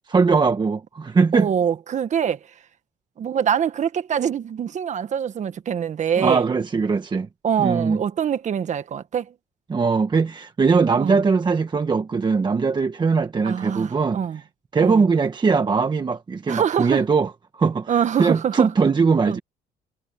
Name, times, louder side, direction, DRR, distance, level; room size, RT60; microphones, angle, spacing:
voice 1, 0.1-1.5 6.2-7.3 7.6-8.0 9.7-14.4 14.7-19.4, right 5 dB, 25° right, 1.3 m, -21 dB
voice 2, 1.3-2.4 3.2-6.4 7.4-9.3 11.0-11.2 13.4-14.4 14.8-15.0 16.5-17.0 17.9-18.7 19.2-19.4, right 8 dB, 45° right, 1.5 m, -24 dB
cardioid pair, 110°, 17 cm